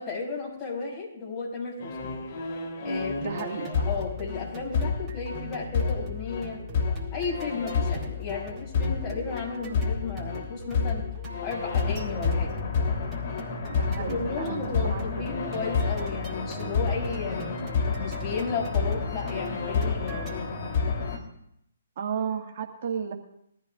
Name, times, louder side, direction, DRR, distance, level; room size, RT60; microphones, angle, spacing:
voice 1, 0.0-2.2 2.8-3.4 3.8-6.6 7.1-11.1 11.4-12.5 14.1-17.6 18.0-20.5, left 4 dB, 30° left, -3 dB, 6.7 m, -34 dB
sound 1, 1.8-21.2, left 5 dB, 50° left, 3.3 m, -30 dB
sound 2, 3.2-20.4, right 4 dB, 15° right, 3.2 m, -43 dB
voice 2, 3.2-3.9 13.7-15.4 22.0-23.1, right 7 dB, 50° right, 1 dB, 1.9 m, -34 dB
22.0 x 14.0 x 2.5 m, 0.75 s
hypercardioid pair, 135°, 0 cm